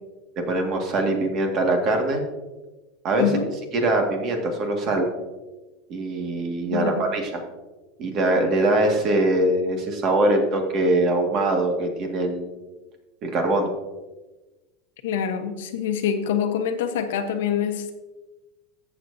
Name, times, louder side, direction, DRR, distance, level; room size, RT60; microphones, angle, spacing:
voice 1, 0.4-2.2 3.0-3.3 3.7-5.1 5.9-7.4 8.0-12.5 13.2-13.7, right 2 dB, 40° right, 3 dB, 2.0 m, -22 dB
voice 2, 6.7-7.1 15.0-17.9, left 8 dB, 90° left, 7 dB, 1.1 m, -25 dB
14.0 x 7.3 x 2.8 m, 1.1 s
supercardioid pair, 145°, 0 cm